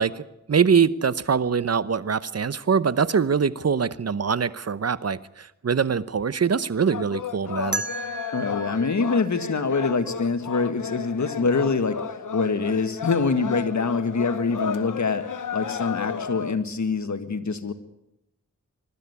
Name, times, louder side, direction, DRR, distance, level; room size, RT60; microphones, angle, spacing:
voice 1, 0.0-7.8, right 6 dB, 55° right, 17 dB, 0.9 m, -23 dB
sound 1, 6.9-16.6, left 6 dB, 90° left, 1.0 m, -33 dB
sound 2, 7.7-10.6, right 2 dB, 35° right, 1.5 m, -35 dB
voice 2, 8.3-12.0 12.3-15.3 15.5-17.7, left 4 dB, 65° left, 9 dB, 1.8 m, -25 dB
22.5 x 12.5 x 9.7 m, 0.84 s
cardioid pair, 50°, 30 cm